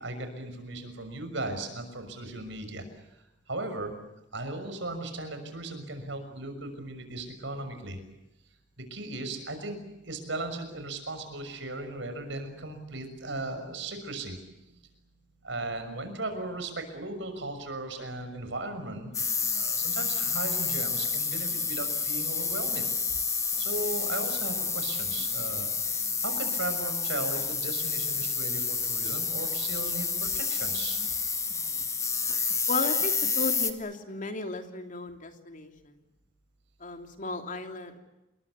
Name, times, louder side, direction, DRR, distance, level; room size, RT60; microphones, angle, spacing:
voice 1, 0.0-2.8 3.5-3.9 4.3-8.0 8.8-14.4 14.7-14.8 15.4-19.2 19.5-22.8 23.6-25.7 26.2-31.0, right 2 dB, 70° right, 7 dB, 6.3 m, -37 dB
sound 1, 19.1-33.7, left 5 dB, 15° left, 1.9 m, -29 dB
voice 2, 32.7-35.9 36.8-38.0, left 3 dB, 45° left, 5 dB, 3.0 m, -35 dB
28.5 x 22.0 x 8.3 m, 0.95 s
head